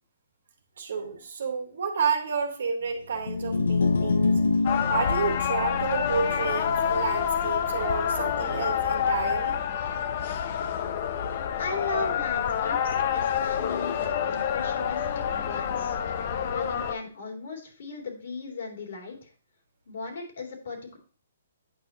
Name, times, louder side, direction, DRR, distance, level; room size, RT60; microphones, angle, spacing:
voice 1, 0.8-4.4 4.9-9.6, right 5 dB, 70° right, 4 dB, 1.5 m, -30 dB
sound 1, 3.1-9.5, left 4 dB, 90° left, 0.7 m, -28 dB
sound 2, 4.6-16.9, left 8 dB, 45° left, 0.7 m, -28 dB
voice 2, 11.6-16.0 16.5-19.3 19.9-21.0, left 4 dB, 65° left, 1 dB, 2.8 m, -36 dB
8.8 x 5.9 x 2.9 m, 0.40 s
hypercardioid pair, 150°, 0 cm